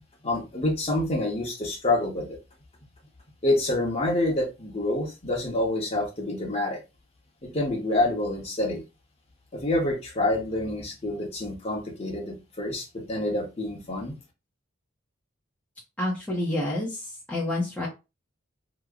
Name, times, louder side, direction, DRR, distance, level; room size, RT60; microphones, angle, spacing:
voice 1, 0.2-2.4 3.4-6.8 7.4-8.8 9.5-14.1, left 1 dB, 30° left, -1 dB, 1.0 m, -27 dB
voice 2, 16.0-17.9, left 1 dB, 5° left, -5 dB, 0.7 m, -28 dB
3.0 x 2.0 x 3.6 m, 0.26 s
head